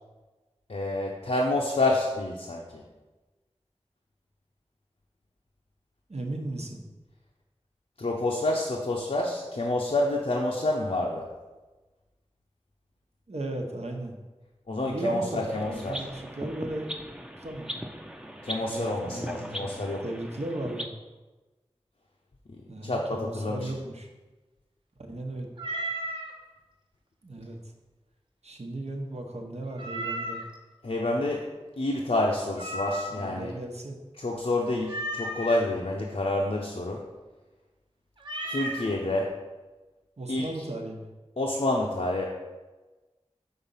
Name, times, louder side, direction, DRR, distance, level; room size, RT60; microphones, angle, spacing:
voice 1, 0.7-2.8 8.0-11.3 14.7-16.0 18.4-20.0 22.8-23.7 30.8-31.4 31.8-33.5 34.2-37.0 38.5-39.3 40.3-40.4 41.4-42.3, left 2 dB, 70° left, -2 dB, 0.7 m, -28 dB
voice 2, 6.1-6.9 13.3-14.2 14.8-17.0 17.4-17.8 18.6-20.9 22.7-24.1 25.0-25.5 27.2-27.6 28.4-30.4 33.1-34.0 40.2-41.1, right 1 dB, 70° right, 2 dB, 1.0 m, -36 dB
sound 1, 15.5-20.9, equal, 5° right, 0.6 m, -39 dB
Meow, 25.6-26.3 29.8-30.6 32.6-33.4 34.9-35.6 38.2-38.9, right 1 dB, 45° right, 1.0 m, -34 dB
5.6 x 3.9 x 5.6 m, 1.2 s
wide cardioid pair, 45°, 11 cm